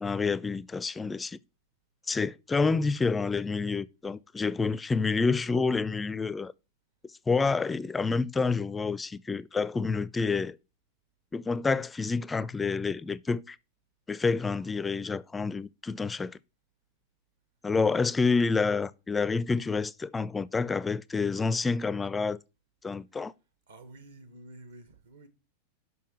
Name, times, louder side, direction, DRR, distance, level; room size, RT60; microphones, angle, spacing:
voice 1, 0.0-1.4 2.1-6.5 7.3-10.6 11.3-13.6 14.1-16.4 17.6-22.4 22.8-23.3, left 4 dB, 15° left, 0.4 m, -28 dB
voice 2, 23.7-25.3, right 2 dB, 65° right, 1.5 m, -50 dB
6.4 x 5.5 x 6.2 m
figure-of-eight pair, 90°, 0 cm